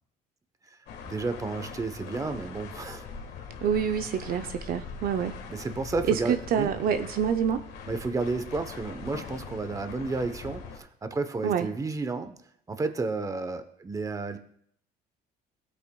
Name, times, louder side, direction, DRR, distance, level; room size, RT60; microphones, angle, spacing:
sound 1, 0.9-10.8, left 5 dB, 75° left, 1.6 m, -42 dB
voice 1, 1.1-3.0 5.5-6.7 7.9-12.4 12.7-14.4, right 3 dB, 20° right, 9 dB, 0.9 m, -32 dB
voice 2, 3.6-5.4 6.1-7.6 11.4-11.7, right 8 dB, 60° right, 8 dB, 0.6 m, -27 dB
17.0 x 8.5 x 2.3 m, 0.65 s
cardioid pair, 110°, 17 cm